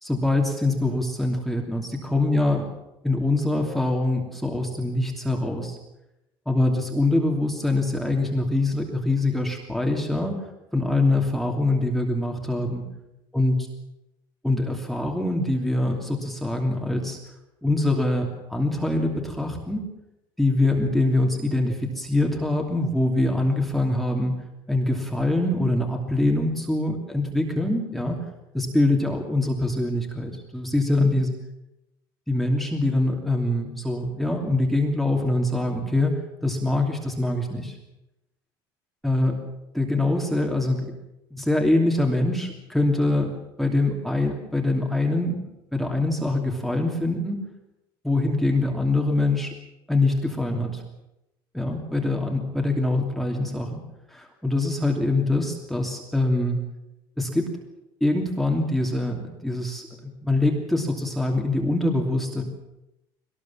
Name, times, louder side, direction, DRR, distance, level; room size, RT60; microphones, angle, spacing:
voice 1, 0.0-2.7 3.0-5.8 6.5-10.5 10.7-12.9 13.3-13.6 14.4-17.2 17.6-19.9 20.4-24.3 24.7-28.2 28.5-31.3 32.3-37.8 39.0-39.4 39.7-40.9 41.3-47.4 48.0-49.5 49.9-50.8 51.5-53.8 54.1-56.6 57.2-57.6 58.0-62.4, left 2 dB, ahead, 0 dB, 2.9 m, -24 dB
21.5 x 19.5 x 7.4 m, 0.90 s
cardioid pair, 125°, 10 cm